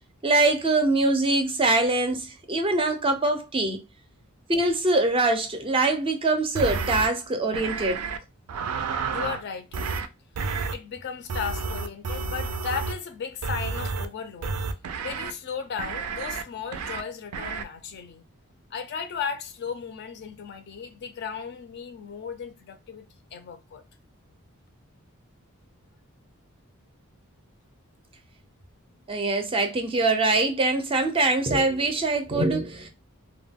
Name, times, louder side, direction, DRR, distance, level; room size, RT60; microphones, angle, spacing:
voice 1, 0.2-3.8 4.5-8.0 29.1-32.9, right 2 dB, 25° right, 0.4 m, -23 dB
sound 1, 6.5-7.1 7.5-8.2 8.5-9.4 9.7-10.1 10.3-10.7 11.3-13.0 13.4-14.1 14.4-15.3 15.8-16.4 16.7-17.0 17.3-17.6, right 4 dB, 90° right, 0.4 m, -30 dB
voice 2, 9.1-9.7 10.7-14.6 15.0-18.2 18.7-23.8, left 6 dB, 50° left, 0.4 m, -35 dB
2.2 x 2.1 x 3.4 m
head